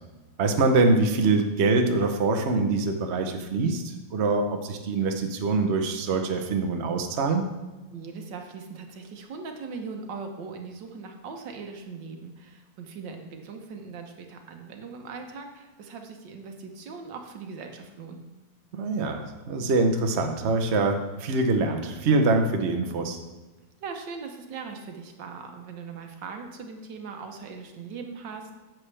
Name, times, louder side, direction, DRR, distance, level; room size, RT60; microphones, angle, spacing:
voice 1, 0.4-7.5 18.7-23.2, right 3 dB, 50° right, 4 dB, 0.9 m, -24 dB
voice 2, 7.9-18.2 23.8-28.5, right 5 dB, 70° right, 4 dB, 1.6 m, -40 dB
10.5 x 7.6 x 3.3 m, 1.2 s
omnidirectional pair, 2.0 m